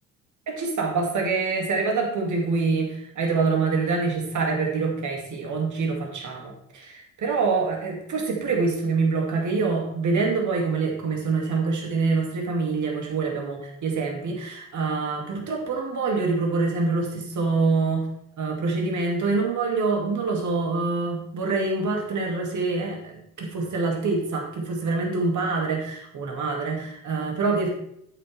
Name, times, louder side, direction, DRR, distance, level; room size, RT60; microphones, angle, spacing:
voice 1, 0.5-18.1 18.4-27.8, right 4 dB, 45° right, 1 dB, 2.6 m, -25 dB
8.6 x 8.5 x 3.5 m, 0.74 s
hypercardioid pair, 55°, 40 cm